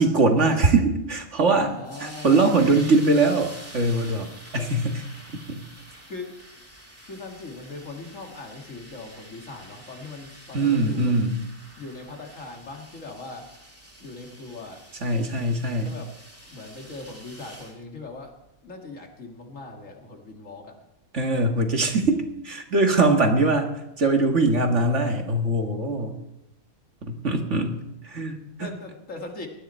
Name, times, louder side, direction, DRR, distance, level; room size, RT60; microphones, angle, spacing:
voice 1, 0.0-1.7 2.0-5.0 5.5-5.6 10.5-11.4 15.0-15.9 21.1-23.7 24.0-26.1 27.0-28.7, right 2 dB, 55° right, 4 dB, 2.0 m, -22 dB
voice 2, 1.6-2.4 6.1-6.6 7.0-11.3 11.8-13.5 14.0-14.8 15.8-16.1 16.5-18.3 18.6-20.8 23.3-23.4 28.6-29.5, left 3 dB, 60° left, 2 dB, 2.5 m, -40 dB
sound 1, 1.8-17.8, right 1 dB, 10° right, 2.5 m, -47 dB
19.0 x 13.0 x 4.4 m, 0.89 s
omnidirectional pair, 1.5 m